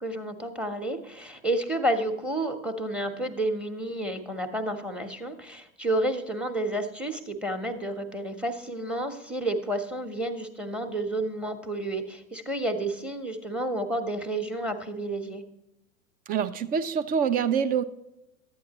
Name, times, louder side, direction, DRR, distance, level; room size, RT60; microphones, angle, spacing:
voice 1, 0.0-15.4, right 1 dB, 5° right, 8 dB, 0.9 m, -30 dB
voice 2, 16.3-17.8, right 7 dB, 25° right, 12 dB, 0.4 m, -25 dB
11.5 x 8.6 x 2.9 m, 0.87 s
hypercardioid pair, 95°, 41 cm